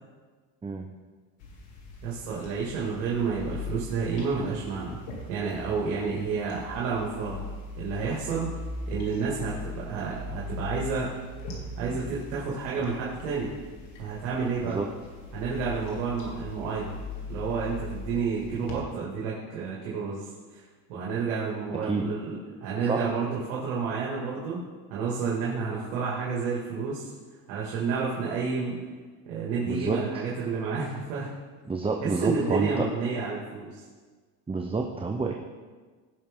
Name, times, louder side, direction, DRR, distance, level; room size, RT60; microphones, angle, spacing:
sound 1, 1.4-18.7, left 3 dB, 75° left, 3.0 m, -40 dB
voice 1, 2.0-5.0 5.3-7.4 7.8-8.5 8.9-11.1 11.8-13.5 14.0-14.8 15.3-16.9 17.3-20.6 20.9-24.6 24.9-27.1 27.5-28.8 29.3-31.3 32.0-33.8, right 5 dB, 90° right, -6 dB, 2.5 m, -30 dB
voice 2, 29.6-30.0 31.7-32.9 34.5-35.3, right 4 dB, 15° right, 3 dB, 0.7 m, -28 dB
17.5 x 6.1 x 3.8 m, 1.4 s
supercardioid pair, 100°, 41 cm